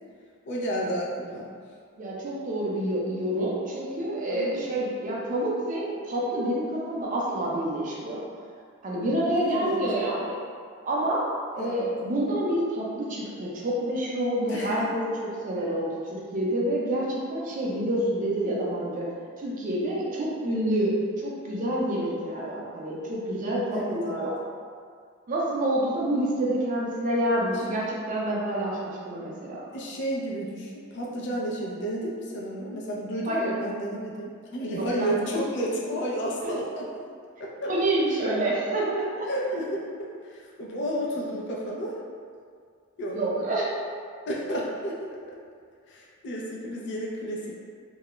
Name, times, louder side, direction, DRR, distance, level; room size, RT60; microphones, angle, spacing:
voice 1, 0.5-1.5 4.3-4.6 9.5-9.8 11.6-11.8 14.5-14.9 23.7-24.3 29.7-36.9 37.4-37.7 39.3-42.0 43.0-43.2 44.3-45.4 45.9-47.5, equal, 60° left, -3 dB, 0.4 m, -32 dB
voice 2, 2.0-8.2 8.8-10.4 10.8-11.2 11.5-19.1 19.4-24.4 25.3-29.6 33.3-33.5 34.7-35.2 36.4-36.5 37.7-39.3 43.1-43.7, right 1 dB, 40° right, -5 dB, 0.5 m, -28 dB
2.3 x 2.0 x 2.9 m, 2.1 s
head